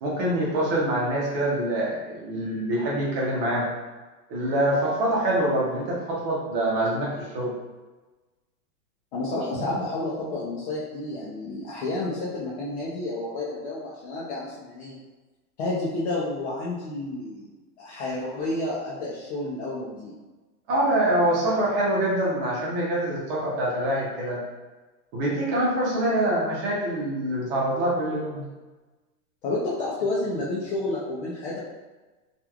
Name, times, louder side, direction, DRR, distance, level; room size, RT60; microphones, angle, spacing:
voice 1, 0.0-3.7 4.3-7.5 20.7-24.4 25.1-28.5, right 1 dB, 30° right, -5 dB, 0.7 m, -25 dB
voice 2, 9.1-15.0 15.6-17.5 17.8-20.1 29.4-31.6, left 2 dB, 45° left, -6 dB, 0.6 m, -30 dB
2.9 x 2.5 x 2.3 m, 1.2 s
hypercardioid pair, 150°, 47 cm